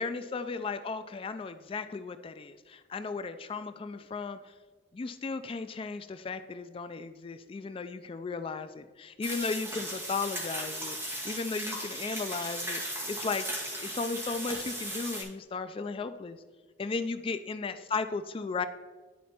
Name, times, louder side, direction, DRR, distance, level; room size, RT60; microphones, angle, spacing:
voice 1, 0.0-4.5 4.9-16.4 16.8-18.7, left 4 dB, 30° left, 10 dB, 0.3 m, -35 dB
sound 1, 9.2-15.2, right 1 dB, 15° right, 1.8 m, -37 dB
11.0 x 4.2 x 4.3 m, 1.3 s
head